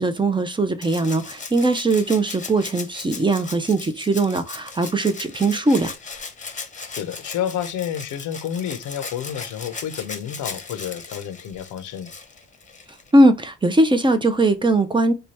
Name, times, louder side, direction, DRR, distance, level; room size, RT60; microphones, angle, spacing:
voice 1, 0.0-5.9 13.1-15.1, right 2 dB, 15° right, 0.4 m, -20 dB
Rattle (instrument), 0.8-13.1 14.5-14.6, left 4 dB, 25° left, 0.7 m, -37 dB
voice 2, 6.9-12.1, left 9 dB, 80° left, 0.6 m, -30 dB
3.2 x 2.2 x 4.0 m
cardioid pair, 90°, 30 cm